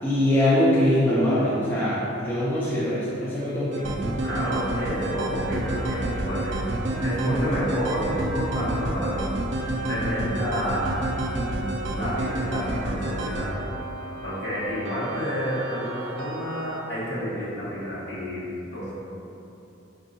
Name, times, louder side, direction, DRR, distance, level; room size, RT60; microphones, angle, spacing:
voice 1, 0.0-3.9, left 1 dB, 10° left, -10 dB, 0.5 m, -22 dB
sound 1, 3.7-16.8, right 1 dB, 65° right, 0.4 m, -29 dB
voice 2, 4.2-9.3 9.9-11.0 11.9-13.5 14.2-18.4 18.7-18.9, equal, 60° left, -10 dB, 1.4 m, -29 dB
5.1 x 2.6 x 2.7 m, 2.9 s
head